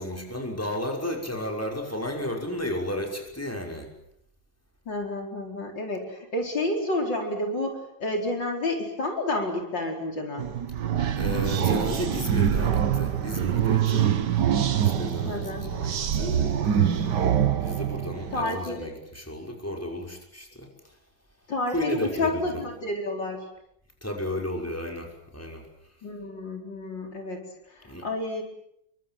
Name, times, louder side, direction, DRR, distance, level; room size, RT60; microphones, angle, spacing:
voice 1, 0.0-3.9 11.2-14.1 14.8-20.7 21.7-22.6 24.0-25.7 27.8-28.1, left 1 dB, 5° left, 1 dB, 5.8 m, -33 dB
voice 2, 4.9-10.4 15.3-15.7 18.3-18.9 21.5-23.5 26.0-28.4, left 2 dB, 65° left, 2 dB, 5.3 m, -30 dB
sound 1, 10.4-18.5, right 9 dB, 60° right, 1.8 m, -25 dB
30.0 x 24.0 x 7.8 m, 0.75 s
omnidirectional pair, 2.1 m